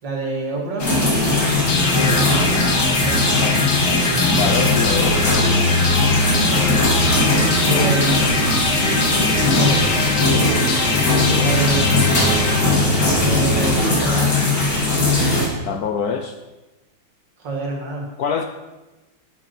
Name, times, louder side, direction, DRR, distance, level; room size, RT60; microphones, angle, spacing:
voice 1, 0.0-0.8 1.9-3.4 6.5-6.8 7.6-8.7 9.5-11.1 11.4-12.7 13.2-14.4 17.4-18.1, right 2 dB, 65° right, -1 dB, 2.8 m, -28 dB
sound 1, 0.8-15.5, left 2 dB, 45° left, 2.7 m, -19 dB
sound 2, 1.7-13.6, left 3 dB, 90° left, 2.1 m, -21 dB
voice 2, 4.3-5.2 15.7-16.4 18.2-18.4, left 7 dB, 70° left, 6 dB, 0.9 m, -24 dB
10.5 x 9.0 x 4.3 m, 1.1 s
omnidirectional pair, 2.1 m